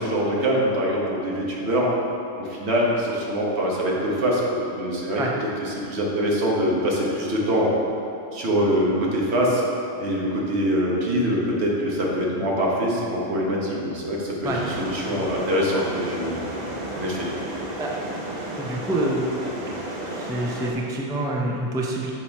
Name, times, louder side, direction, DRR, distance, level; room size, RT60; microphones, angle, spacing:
voice 1, 0.0-1.9 2.4-5.2 5.6-7.7 8.3-9.6 10.0-17.3, equal, 80° right, -3 dB, 1.3 m, -24 dB
sound 1, 14.4-20.7, right 1 dB, 45° right, 0.8 m, -33 dB
voice 2, 18.6-19.4 19.9-22.1, right 1 dB, 5° right, -2 dB, 0.3 m, -27 dB
6.2 x 4.2 x 4.4 m, 2.7 s
omnidirectional pair, 1.1 m